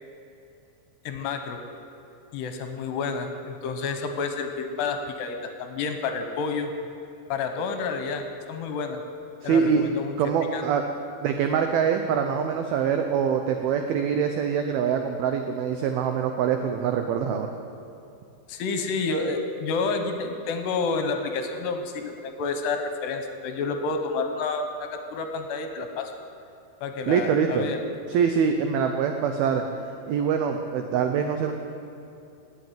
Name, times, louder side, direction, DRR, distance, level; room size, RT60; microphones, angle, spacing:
voice 1, 1.1-1.6 2.3-6.7 7.3-9.0 9.4-10.2 10.5-10.6 18.5-26.1 26.8-27.8, left 4 dB, 75° left, 6 dB, 2.8 m, -29 dB
voice 2, 9.4-9.8 10.2-10.8 11.2-17.5 27.1-27.7 28.1-29.6 30.1-31.5, right 7 dB, 85° right, 5 dB, 2.1 m, -24 dB
18.5 x 8.4 x 9.2 m, 2.6 s
omnidirectional pair, 5.4 m